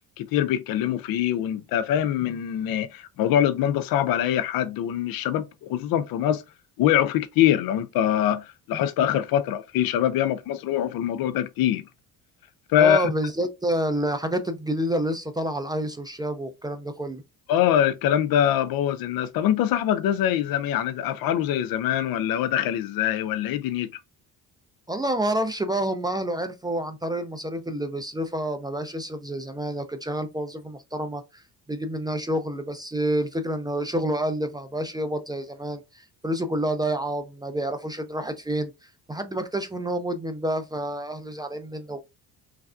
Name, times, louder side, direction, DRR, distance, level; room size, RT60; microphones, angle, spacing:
voice 1, 0.2-6.4 6.8-11.9 12.7-13.1 17.5-23.9, left 10 dB, 70° left, 0.5 m, -23 dB
voice 2, 12.8-17.2 24.9-31.4 31.7-38.7 39.1-42.0, right 1 dB, 10° right, 0.3 m, -28 dB
3.2 x 2.4 x 2.3 m
cardioid pair, 95°, 37 cm